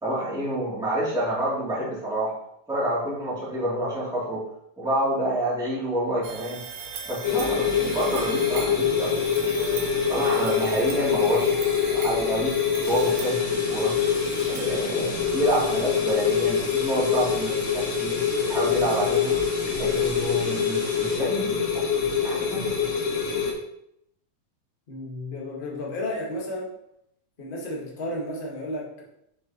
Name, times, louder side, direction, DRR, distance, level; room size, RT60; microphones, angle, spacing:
voice 1, 0.0-2.3 2.7-4.4 4.8-6.6 7.1-9.1 10.1-11.5 11.9-12.5 12.9-13.9 14.5-18.2 18.5-19.3 19.8-21.8 22.2-22.9, right 1 dB, ahead, -8 dB, 2.3 m, -28 dB
sound 1, 6.2-15.3, right 6 dB, 75° right, 1.2 m, -39 dB
sound 2, 7.2-23.5, left 7 dB, 70° left, 2.1 m, -25 dB
sound 3, 12.8-21.2, right 1 dB, 35° right, 1.5 m, -40 dB
voice 2, 24.9-26.7 27.4-29.0, left 1 dB, 30° left, -3 dB, 1.0 m, -32 dB
6.5 x 6.5 x 3.0 m, 0.77 s
omnidirectional pair, 3.3 m